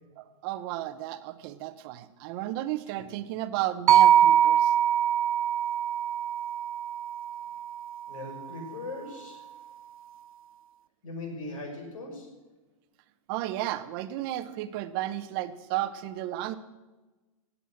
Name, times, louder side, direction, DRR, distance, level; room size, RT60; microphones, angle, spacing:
voice 1, 0.2-4.7 13.3-16.6, right 14 dB, 45° right, 12 dB, 1.0 m, -33 dB
sound 1, 3.9-8.1, right 10 dB, 90° right, 0.4 m, -23 dB
voice 2, 8.1-9.4 11.0-12.3, left 2 dB, 70° left, 2 dB, 6.1 m, -39 dB
17.0 x 8.3 x 7.3 m, 1.2 s
hypercardioid pair, 130°, 17 cm